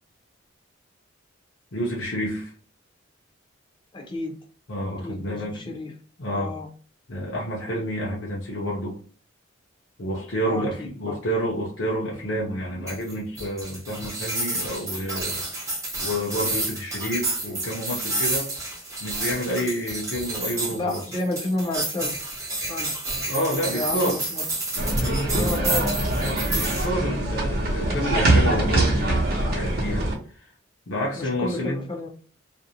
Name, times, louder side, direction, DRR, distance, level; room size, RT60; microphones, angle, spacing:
voice 1, 1.7-2.5 4.7-5.8 6.2-6.5 7.1-9.0 10.0-15.4 16.0-18.5 19.0-21.0 22.6-22.7 23.3-24.2 25.0-25.7 26.2-30.1 30.9-31.8, equal, 70° left, -4 dB, 0.7 m, -29 dB
voice 2, 3.9-4.3 5.0-5.9 6.3-6.7 10.5-10.7 11.1-11.2 20.7-22.2 22.7-22.9 23.7-24.4 25.3-25.9 31.2-32.1, left 2 dB, 25° left, 1 dB, 0.5 m, -30 dB
sound 1, 12.9-26.9, right 2 dB, 15° right, 0.7 m, -30 dB
sound 2, 24.8-30.1, right 1 dB, 50° right, 0.7 m, -23 dB
2.5 x 2.0 x 2.8 m, 0.40 s
head